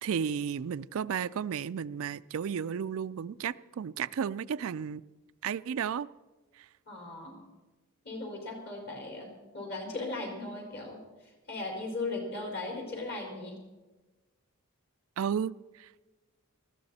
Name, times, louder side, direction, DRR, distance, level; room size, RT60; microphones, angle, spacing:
voice 1, 0.0-5.0 5.4-6.1 6.6-6.7 15.2-16.1, right 7 dB, 65° right, 15 dB, 0.4 m, -33 dB
voice 2, 6.9-7.4 8.0-11.0 11.5-13.6, left 2 dB, 50° left, 1 dB, 4.6 m, -37 dB
19.5 x 15.0 x 4.2 m, 1.2 s
head